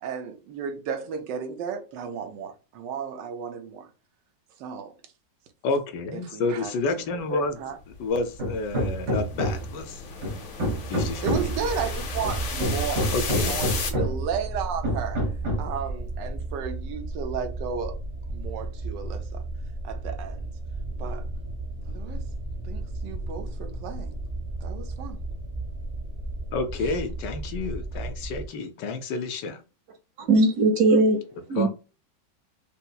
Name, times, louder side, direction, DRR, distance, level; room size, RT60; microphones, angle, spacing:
voice 1, 0.0-3.9 4.6-5.0 6.1-7.8 11.2-15.2 15.6-18.0 18.3-19.4 19.8-20.5 21.0-21.3 21.9-22.2 22.6-24.2 24.6-25.3 26.8-27.0, right 6 dB, 90° right, 1.3 m, -34 dB
voice 2, 5.6-7.6 8.0-10.0 10.9-11.3 13.1-13.6 26.5-29.6 31.6-31.7, left 3 dB, 75° left, 1.2 m, -29 dB
sound 1, 7.9-13.9, left 5 dB, 55° left, 0.9 m, -35 dB
Hammer, 8.4-9.8 10.2-11.6 12.2-14.3 14.8-15.8, equal, 75° right, 1.8 m, -28 dB
sound 2, 11.3-28.5, right 2 dB, 35° right, 1.0 m, -34 dB
voice 3, 30.2-31.2 31.5-31.7, right 2 dB, 55° right, 1.1 m, -19 dB
5.5 x 2.0 x 2.2 m
omnidirectional pair, 1.9 m